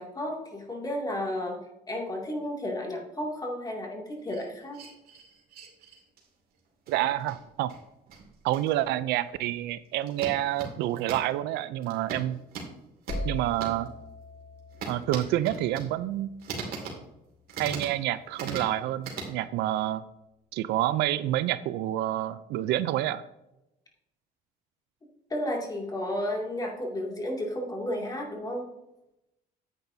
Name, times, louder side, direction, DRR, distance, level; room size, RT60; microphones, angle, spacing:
voice 1, 0.0-1.6 1.9-4.8 25.3-28.7, left 1 dB, 20° left, -1 dB, 2.4 m, -32 dB
sound 1, 4.3-6.3 6.9-8.9 9.4-9.6 10.0-11.3 11.8-13.9 14.7-15.9 16.4-17.0 17.5-18.8 19.0-19.3, right 4 dB, 65° right, 2.4 m, -39 dB
voice 2, 6.9-7.7 8.4-12.4 13.2-13.9 14.9-16.3 17.6-20.0 20.5-23.2, right 14 dB, 85° right, 15 dB, 0.5 m, -28 dB
sound 2, 13.1-16.9, left 1 dB, 85° left, 1.7 m, -40 dB
9.9 x 8.6 x 2.7 m, 0.89 s
cardioid pair, 110°, 17 cm